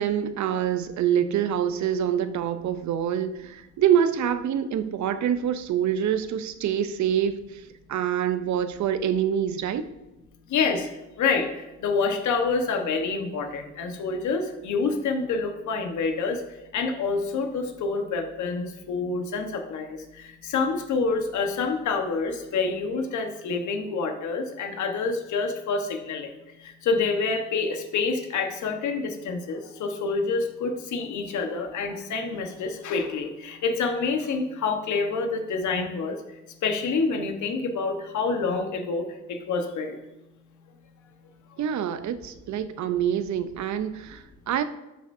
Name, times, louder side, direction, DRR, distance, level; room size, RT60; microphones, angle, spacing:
voice 1, 0.0-7.6 7.9-9.9 41.6-44.6, right 9 dB, 70° right, 11 dB, 0.7 m, -26 dB
voice 2, 10.5-10.9 11.2-16.4 16.7-26.3 26.6-40.0 41.5-41.6, left 4 dB, 75° left, 5 dB, 1.3 m, -27 dB
12.5 x 6.8 x 2.7 m, 0.99 s
cardioid pair, 90°, 30 cm